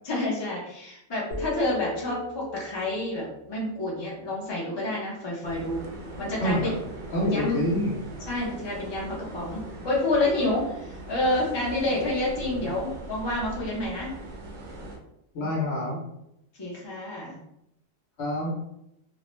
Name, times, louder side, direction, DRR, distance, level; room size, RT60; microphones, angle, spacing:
voice 1, 0.0-5.8 6.2-6.5 7.3-7.6 8.3-9.6 9.8-14.1 16.6-17.4, left 2 dB, 30° left, -5 dB, 0.6 m, -28 dB
sound 1, 1.3-5.4, left 2 dB, 80° left, 1.1 m, -41 dB
sound 2, 5.4-15.0, right 2 dB, 75° right, 0.9 m, -40 dB
voice 2, 6.4-6.7 7.1-7.9 12.4-12.7 15.3-16.0 18.2-18.5, equal, 60° left, -3 dB, 0.9 m, -27 dB
2.5 x 2.1 x 3.0 m, 0.81 s
omnidirectional pair, 1.3 m